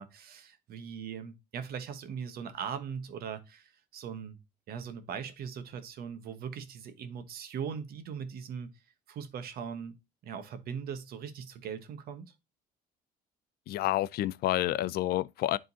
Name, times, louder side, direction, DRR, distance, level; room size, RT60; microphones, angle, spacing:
voice 1, 0.0-4.4 4.7-8.7 9.1-12.2, right 7 dB, 65° right, 1.1 m, -40 dB
voice 2, 13.7-15.6, left 15 dB, 65° left, 0.4 m, -29 dB
10.5 x 3.8 x 2.7 m
cardioid pair, 110°, 17 cm